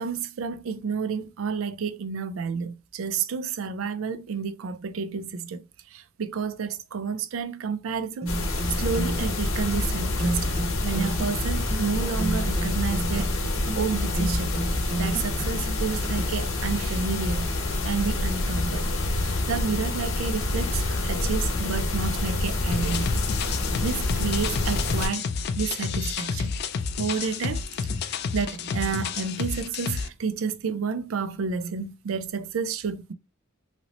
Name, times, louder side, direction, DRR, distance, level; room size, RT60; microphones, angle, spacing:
voice 1, 0.0-5.6 5.9-8.3 8.8-10.5 10.8-13.4 13.8-14.6 15.0-17.5 17.8-18.9 19.2-25.2 25.5-26.5 27.0-27.6 28.0-33.1, right 5 dB, 80° right, 0.4 m, -30 dB
sound 1, 8.2-16.2, right 2 dB, 30° right, 0.5 m, -33 dB
sound 2, 8.3-25.1, left 2 dB, 80° left, 0.9 m, -27 dB
sound 3, 22.7-30.1, left 5 dB, 55° left, 0.3 m, -30 dB
2.9 x 2.8 x 2.8 m
head